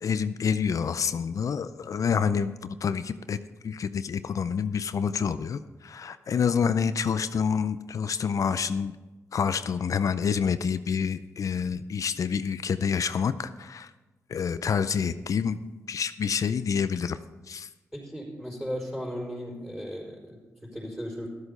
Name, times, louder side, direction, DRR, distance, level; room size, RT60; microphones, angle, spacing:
voice 1, 0.0-3.4 3.6-8.9 9.3-13.9 14.3-15.6 15.9-17.2 17.5-17.7, left 6 dB, 65° left, 12 dB, 0.5 m, -27 dB
voice 2, 17.9-21.3, equal, 10° right, -8 dB, 4.4 m, -36 dB
12.5 x 8.1 x 5.4 m, 1.2 s
cardioid pair, 60°, 6 cm